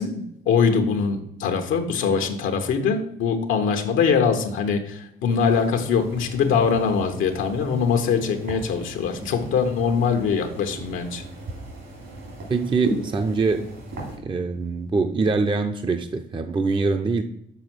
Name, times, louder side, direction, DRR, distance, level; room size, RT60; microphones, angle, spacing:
voice 1, 0.0-11.2, left 6 dB, 85° left, 5 dB, 1.1 m, -22 dB
sound 1, 5.3-14.2, right 2 dB, 75° right, 3.2 m, -37 dB
voice 2, 12.5-13.7 14.2-17.2, right 4 dB, 25° right, 6 dB, 0.5 m, -23 dB
6.9 x 4.4 x 6.0 m, 0.79 s
cardioid pair, 90°, 20 cm